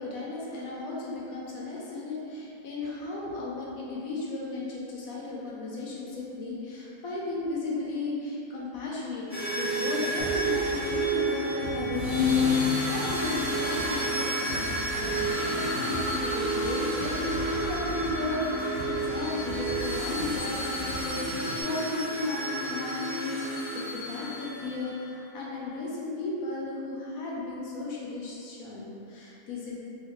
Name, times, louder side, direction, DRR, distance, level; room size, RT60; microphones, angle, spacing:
voice 1, 0.0-9.3 9.6-23.6 23.9-29.8, left 2 dB, 70° left, -5 dB, 0.9 m, -35 dB
sound 1, 9.3-24.9, equal, 15° right, 0.6 m, -30 dB
sound 2, 10.2-21.6, right 2 dB, 70° right, 1.0 m, -39 dB
2.8 x 2.7 x 2.9 m, 2.7 s
omnidirectional pair, 1.7 m